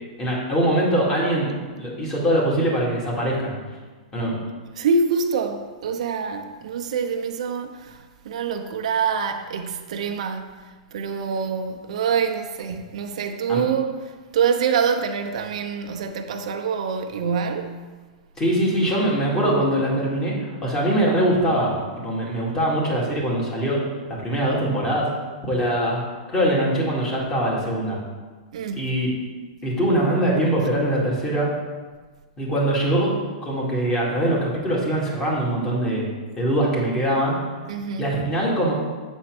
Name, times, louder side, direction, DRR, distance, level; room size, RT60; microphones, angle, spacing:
voice 1, 0.2-1.5 1.8-3.5 4.1-4.3 13.5-13.6 18.4-23.8 24.1-25.1 25.4-26.0 26.3-28.0 28.7-29.1 29.6-31.5 32.4-36.1 36.4-37.4 38.0-38.7, right 1 dB, 20° left, 2.2 m, -22 dB
voice 2, 4.8-14.0 14.3-17.8 28.5-28.8 37.7-38.0, right 5 dB, 70° right, 0.8 m, -25 dB
8.1 x 4.4 x 6.0 m
hypercardioid pair, 150°, 4 cm